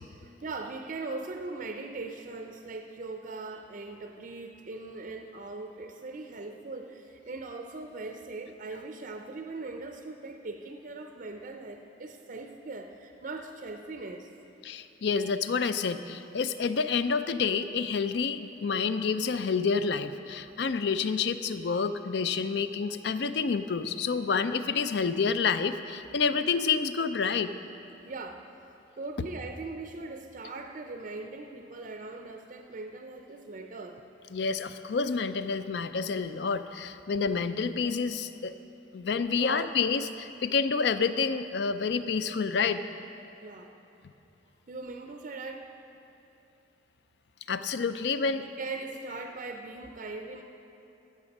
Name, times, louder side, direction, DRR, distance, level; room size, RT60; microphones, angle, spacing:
voice 1, 0.1-14.3 28.0-28.5 29.0-34.0 39.4-39.8 43.4-43.7 44.7-45.7 48.4-50.4, right 3 dB, 45° right, 5 dB, 0.5 m, -40 dB
voice 2, 14.6-27.5 34.3-38.5 38.9-42.8 47.5-48.4, left 5 dB, 65° left, 11 dB, 0.4 m, -28 dB
14.0 x 7.1 x 5.3 m, 2.8 s
head